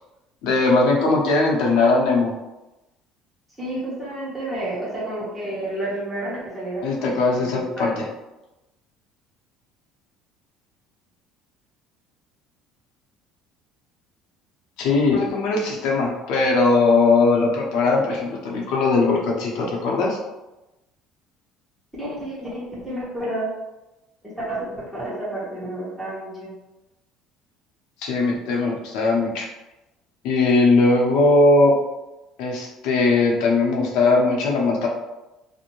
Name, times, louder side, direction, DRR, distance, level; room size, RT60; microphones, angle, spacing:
voice 1, 0.4-2.3 6.8-8.0 14.8-20.2 28.0-29.5 30.2-31.7 32.4-34.9, left 3 dB, 75° left, -1 dB, 0.7 m, -19 dB
voice 2, 3.6-7.9 22.0-23.5 24.4-26.5, right 1 dB, 5° right, -8 dB, 1.1 m, -30 dB
2.6 x 2.1 x 2.9 m, 1.0 s
cardioid pair, 125°, 0 cm